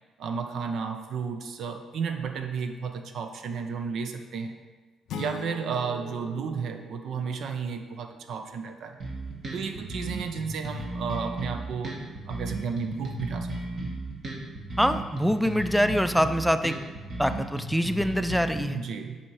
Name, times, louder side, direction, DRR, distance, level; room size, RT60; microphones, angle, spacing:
voice 1, 0.2-4.6 5.2-9.0 9.5-12.0 12.3-13.8 18.7-19.2, right 6 dB, 70° right, 7 dB, 0.7 m, -33 dB
sound 1, 5.1-7.9, left 1 dB, 80° left, 0.5 m, -40 dB
sound 2, 9.0-18.6, right 1 dB, 50° right, 1.6 m, -35 dB
voice 2, 14.8-16.7 17.2-18.8, equal, ahead, 10 dB, 0.4 m, -24 dB
7.1 x 4.4 x 4.8 m, 1.3 s
cardioid pair, 90°, 0 cm